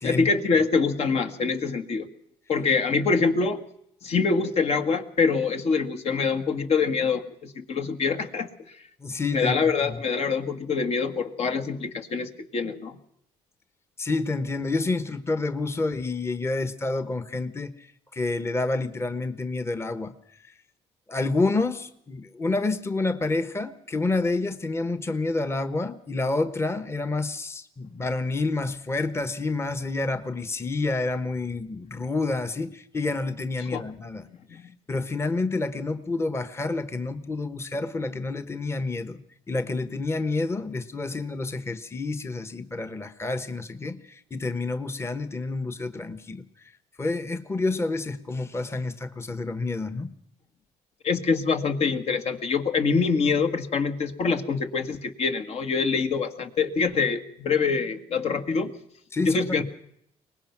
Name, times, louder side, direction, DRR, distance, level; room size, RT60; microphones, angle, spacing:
voice 1, 0.0-2.1 2.5-3.6 4.0-8.8 9.3-13.0 33.6-33.8 34.5-34.7 51.0-58.7 59.3-59.6, left 5 dB, 55° left, 8 dB, 1.9 m, -25 dB
voice 2, 9.0-9.5 9.9-10.0 14.0-17.9 18.1-20.1 21.1-34.3 34.9-39.2 39.5-46.4 47.0-50.1 59.1-59.4, left 3 dB, 20° left, 12 dB, 1.3 m, -28 dB
23.0 x 19.5 x 6.0 m, 0.72 s
cardioid pair, 90°, 13 cm